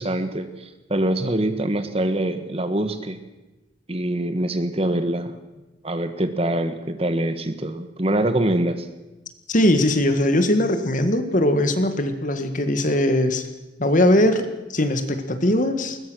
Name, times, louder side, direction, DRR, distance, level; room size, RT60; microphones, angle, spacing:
voice 1, 0.0-3.2 3.9-5.3 5.8-8.9, right 1 dB, 30° right, 9 dB, 1.5 m, -24 dB
voice 2, 9.5-13.5 13.8-16.0, left 1 dB, 45° left, 8 dB, 1.8 m, -20 dB
21.5 x 20.5 x 6.3 m, 1.1 s
head